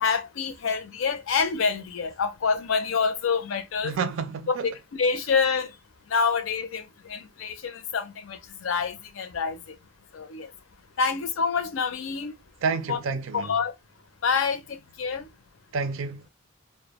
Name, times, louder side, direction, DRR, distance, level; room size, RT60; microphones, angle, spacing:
voice 1, 0.0-4.0 4.5-5.7 6.1-9.7 10.1-10.5 11.0-12.4 12.9-13.0 13.3-13.7 14.2-15.3, left 5 dB, 75° left, 0.5 m, -27 dB
voice 2, 3.8-4.7 12.6-13.6 15.7-16.3, right 5 dB, 75° right, 0.4 m, -29 dB
2.2 x 2.0 x 2.9 m
head